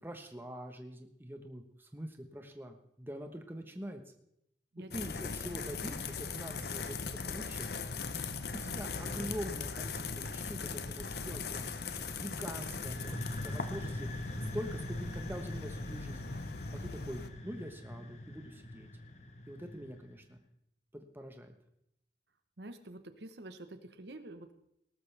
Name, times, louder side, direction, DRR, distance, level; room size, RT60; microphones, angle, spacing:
voice 1, 0.0-4.0 4.8-7.7 8.5-14.1 14.5-16.2 16.7-18.9 19.5-20.4 20.9-21.5, equal, 10° right, 5 dB, 1.1 m, -44 dB
sound 1, 4.9-17.3, left 4 dB, 65° left, 0.8 m, -40 dB
sound 2, 12.6-20.3, left 1 dB, 40° left, 1.0 m, -42 dB
voice 2, 22.6-24.5, right 2 dB, 75° right, 9 dB, 1.0 m, -47 dB
18.5 x 13.0 x 3.4 m, 0.77 s
head